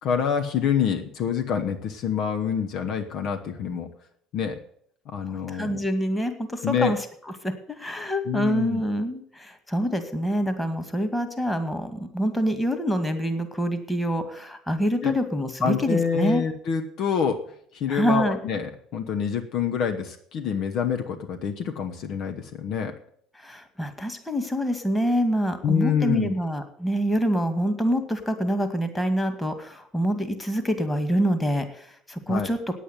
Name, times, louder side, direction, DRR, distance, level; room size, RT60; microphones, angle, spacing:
voice 1, 0.0-3.9 4.3-4.6 5.1-5.8 6.6-6.9 8.3-8.8 15.0-15.1 15.6-17.4 17.7-22.9 25.6-26.3 32.3-32.5, left 7 dB, 55° left, 5 dB, 1.1 m, -26 dB
voice 2, 5.3-7.0 7.4-16.4 17.9-18.4 23.4-32.6, equal, 10° left, 8 dB, 2.0 m, -26 dB
9.3 x 8.4 x 9.4 m, 0.67 s
hypercardioid pair, 65°, 0 cm